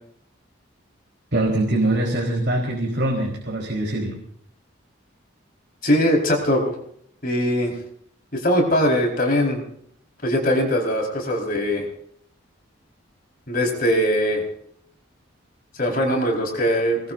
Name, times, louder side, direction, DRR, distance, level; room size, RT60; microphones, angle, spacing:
voice 1, 1.3-4.2, right 1 dB, 55° right, -1 dB, 4.3 m, -23 dB
voice 2, 5.8-6.7 7.2-7.7 8.3-9.6 10.2-11.9 13.5-14.4 15.8-17.0, equal, 45° left, 1 dB, 4.7 m, -21 dB
25.0 x 20.5 x 2.7 m, 0.65 s
head